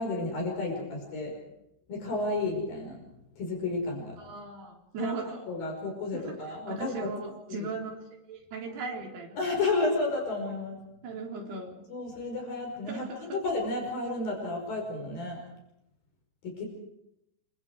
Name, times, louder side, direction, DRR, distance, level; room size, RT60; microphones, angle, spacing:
voice 1, 0.0-1.3 1.9-3.0 3.4-4.2 5.0-7.1 9.4-10.8 11.9-15.4 16.4-16.6, left 2 dB, 60° left, 1 dB, 7.0 m, -32 dB
voice 2, 4.2-5.5 6.1-6.4 6.7-8.0 8.3-9.4 11.0-11.8 12.9-13.4, right 4 dB, 75° right, 0 dB, 5.9 m, -38 dB
28.5 x 25.5 x 4.8 m, 0.83 s
omnidirectional pair, 4.7 m